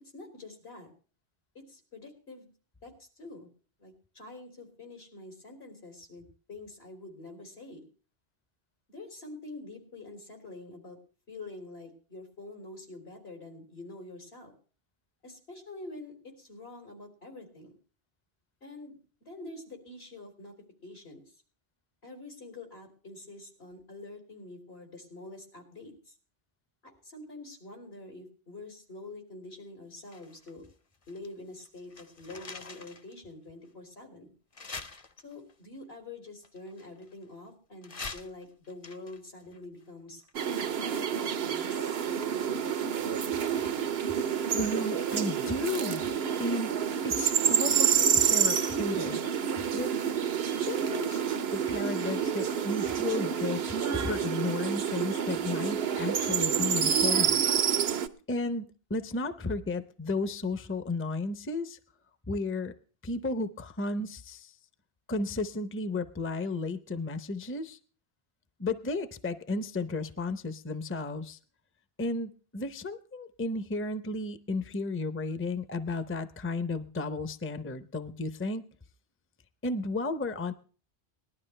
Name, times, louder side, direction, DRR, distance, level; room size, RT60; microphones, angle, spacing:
voice 1, 0.1-0.9 1.6-2.4 2.8-3.5 3.8-7.8 8.9-11.0 11.3-14.5 15.2-17.8 18.6-20.5 20.8-21.2 22.0-26.1 26.8-30.6 31.1-34.3 35.2-40.2 40.6-42.9, left 2 dB, 80° left, 3 dB, 3.8 m, -46 dB
sound 1, 30.1-31.3 31.6-33.1 33.6-33.7 34.5-35.5 36.4-37.4 37.8-42.2 42.5-42.6, left 4 dB, 35° left, 0.9 m, -46 dB
sound 2, 40.3-58.1, right 8 dB, 80° right, 1.0 m, -28 dB
voice 2, 44.5-46.1 46.4-46.7 47.0-49.2 49.7-49.9 50.7-51.2 51.5-57.4 57.7-57.9 58.3-61.8 62.3-62.7 63.0-64.5 65.1-67.8 68.6-71.4 72.0-78.6 79.6-80.5, left 2 dB, 15° left, 11 dB, 0.6 m, -33 dB
19.5 x 12.0 x 3.3 m, 0.39 s
omnidirectional pair, 1.0 m